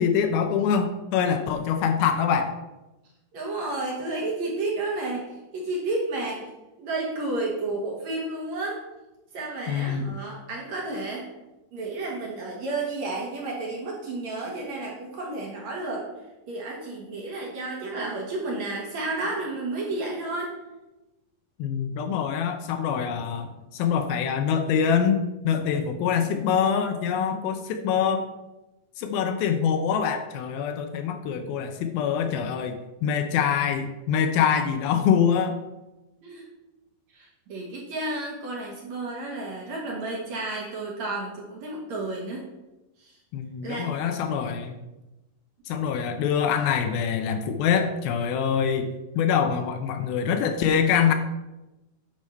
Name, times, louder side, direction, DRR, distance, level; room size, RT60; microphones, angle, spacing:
voice 1, 0.0-2.5 9.7-10.1 21.6-28.3 29.0-32.7 33.0-35.6 43.3-44.8 45.7-51.1, left 7 dB, 80° left, 6 dB, 2.4 m, -24 dB
voice 2, 3.3-6.5 6.8-8.8 9.3-11.3 11.7-16.1 16.5-20.6 36.2-36.4 37.1-42.4 43.0-43.2 43.6-43.9, right 2 dB, 55° right, -2 dB, 2.3 m, -31 dB
10.5 x 4.9 x 5.5 m, 1.0 s
omnidirectional pair, 4.6 m